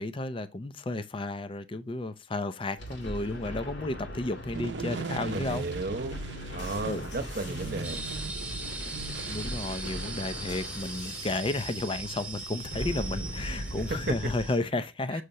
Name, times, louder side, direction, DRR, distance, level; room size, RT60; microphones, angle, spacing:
voice 1, 0.0-5.7 6.6-7.1 9.3-15.2, left 2 dB, 30° left, 0.5 m, -32 dB
sound 1, 2.8-14.5, equal, 80° left, 2.2 m, -39 dB
sound 2, 4.5-10.2, right 4 dB, 75° right, 0.6 m, -40 dB
voice 2, 5.3-6.2 6.5-8.1 13.9-14.3 15.1-15.2, right 2 dB, 55° right, 1.0 m, -34 dB
sound 3, 7.8-14.6, right 3 dB, 10° right, 1.0 m, -40 dB
6.4 x 2.9 x 5.4 m
head